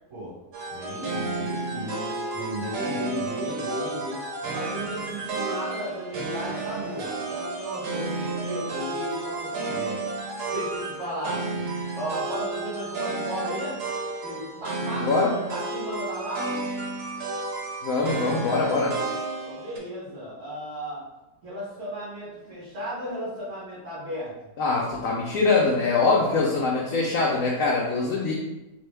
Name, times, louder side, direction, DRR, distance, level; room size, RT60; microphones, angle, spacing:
sound 1, 0.5-19.8, right 3 dB, 70° right, 1.2 m, -32 dB
voice 1, 0.7-10.0 10.5-13.8 14.2-16.5 19.4-21.0 21.4-24.3, equal, 50° right, -8 dB, 1.4 m, -35 dB
voice 2, 14.8-15.3 17.8-19.0 24.6-28.3, left 3 dB, 70° left, -3 dB, 0.8 m, -23 dB
3.0 x 2.7 x 3.2 m, 0.99 s
omnidirectional pair, 1.8 m